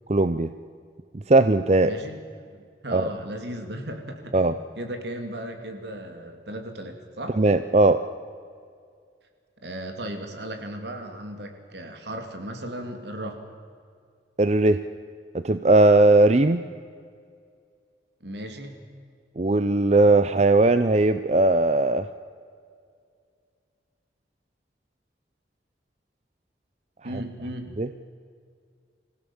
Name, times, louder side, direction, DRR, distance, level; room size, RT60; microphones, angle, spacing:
voice 1, 0.1-0.5 1.3-1.9 2.9-3.1 4.3-4.5 7.3-8.0 14.4-14.8 15.3-16.6 19.4-22.1 27.8-27.9, right 2 dB, 35° right, 11 dB, 0.6 m, -18 dB
voice 2, 1.8-7.4 9.6-13.4 18.2-18.8 27.0-27.7, right 1 dB, 75° right, 5 dB, 2.9 m, -36 dB
26.0 x 16.0 x 7.1 m, 2.2 s
head